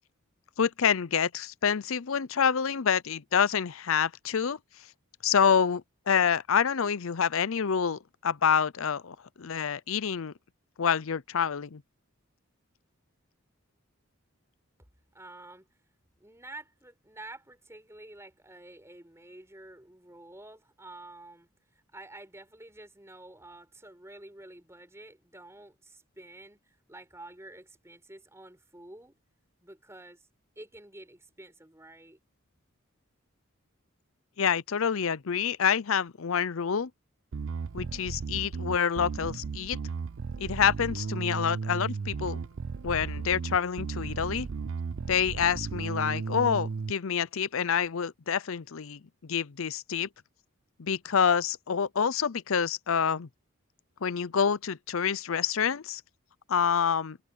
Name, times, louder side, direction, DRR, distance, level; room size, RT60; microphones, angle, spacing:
voice 1, 0.6-4.6 5.2-10.3 10.8-11.8 34.4-36.9 37.7-39.8 40.4-42.4 42.8-44.5 45.1-50.1 50.8-53.3 54.0-56.0 56.5-57.2, left 7 dB, 70° left, 0.6 m, -27 dB
voice 2, 15.1-15.7 16.2-21.5 21.9-29.2 29.6-30.2 30.6-32.2, right 2 dB, 15° right, 4.7 m, -49 dB
Bass guitar, 37.3-46.9, right 5 dB, 65° right, 0.5 m, -35 dB
open air
head